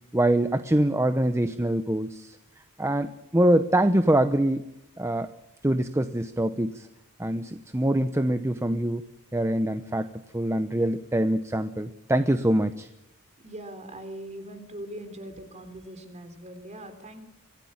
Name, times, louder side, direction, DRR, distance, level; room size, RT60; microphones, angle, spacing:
voice 1, 0.1-2.4 2.8-4.6 5.0-5.3 5.6-6.9 7.2-9.0 9.3-12.9, right 1 dB, 15° right, 10 dB, 0.8 m, -24 dB
voice 2, 13.4-17.2, right 1 dB, 30° right, 8 dB, 3.8 m, -41 dB
25.5 x 16.0 x 8.7 m, 0.91 s
head